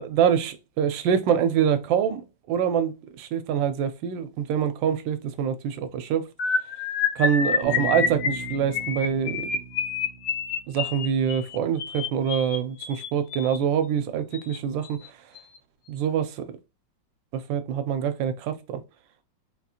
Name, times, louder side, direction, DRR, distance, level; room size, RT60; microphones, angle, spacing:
voice 1, 0.1-6.2 7.2-9.5 10.7-15.0 15.9-16.5 17.3-18.8, right 8 dB, 85° right, 1.3 m, -25 dB
sound 1, 6.4-13.6 14.3-14.6 14.8-15.1 15.4-15.6, left 6 dB, 70° left, 1.0 m, -28 dB
Bass guitar, 7.6-11.3, right 7 dB, 65° right, 1.0 m, -38 dB
3.9 x 2.4 x 2.8 m
omnidirectional pair, 2.0 m